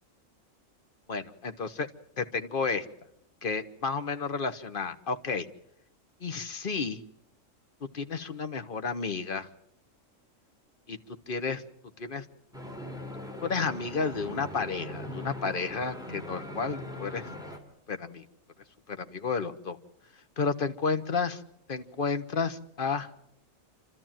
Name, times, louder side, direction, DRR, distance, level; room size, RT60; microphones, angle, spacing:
voice 1, 1.1-1.9 2.2-2.8 3.4-5.5 6.2-7.0 7.9-9.5 10.9-11.6 12.0-12.2 13.4-17.3 17.9-18.2 18.9-19.8 20.4-21.4 21.7-23.1, left 4 dB, 45° left, 9 dB, 1.4 m, -31 dB
sound 1, 12.5-17.6, left 1 dB, 5° right, 3.0 m, -40 dB
28.0 x 13.0 x 9.0 m, 0.75 s
omnidirectional pair, 1.3 m